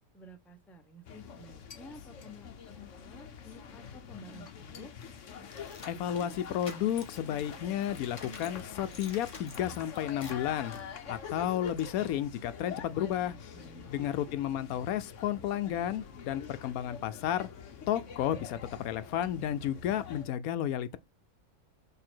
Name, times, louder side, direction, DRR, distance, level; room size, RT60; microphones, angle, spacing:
voice 1, 0.1-4.9 13.5-13.9, equal, ahead, 0.6 m, -52 dB
sound 1, 1.0-20.2, left 7 dB, 60° left, 1.2 m, -46 dB
sound 2, 5.0-8.6 8.9-10.5, left 3 dB, 25° left, 0.9 m, -49 dB
voice 2, 5.8-10.7 11.1-13.4 13.9-17.5 17.9-21.0, left 11 dB, 80° left, 1.0 m, -32 dB
6.8 x 3.4 x 4.5 m
omnidirectional pair, 1.5 m